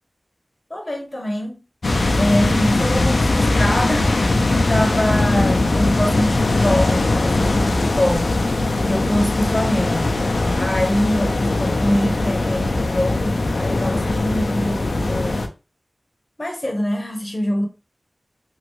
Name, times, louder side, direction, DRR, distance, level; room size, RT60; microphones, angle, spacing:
voice 1, 0.7-1.6 2.1-8.3 8.8-10.1 10.5-15.4 16.4-17.7, left 1 dB, 35° left, 1.0 m, -24 dB
sound 1, 1.8-15.5, left 2 dB, 90° left, 0.5 m, -20 dB
3.0 x 2.6 x 3.1 m
wide cardioid pair, 65°, 0 cm